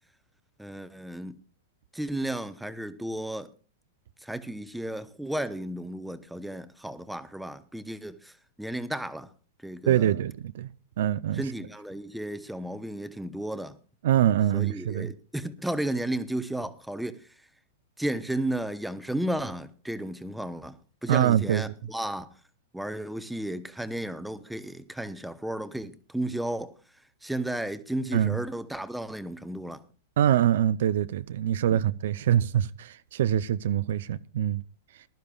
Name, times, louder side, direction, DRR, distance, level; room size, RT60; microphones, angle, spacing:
voice 1, 0.6-1.4 1.9-3.5 4.2-8.3 8.6-9.3 9.6-10.1 11.3-13.7 14.5-17.2 18.0-20.8 21.0-22.3 22.7-26.7 27.2-29.8 31.7-31.8, right 1 dB, ahead, 0.8 m, -33 dB
voice 2, 9.9-10.7 11.0-11.4 14.0-15.1 21.1-21.6 28.1-28.4 30.2-34.6, right 11 dB, 70° right, 0.5 m, -24 dB
20.0 x 12.0 x 2.4 m
hypercardioid pair, 140°, 0 cm